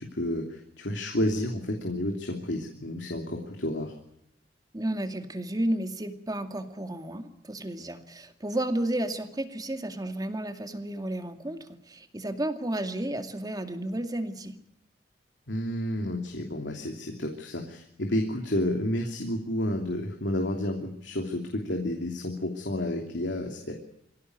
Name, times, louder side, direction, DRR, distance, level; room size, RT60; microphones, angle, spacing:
voice 1, 0.0-3.9 15.5-23.7, left 1 dB, 80° left, 2 dB, 3.0 m, -30 dB
voice 2, 4.7-14.6, right 1 dB, 20° right, 7 dB, 2.2 m, -32 dB
25.0 x 16.5 x 9.5 m, 0.78 s
head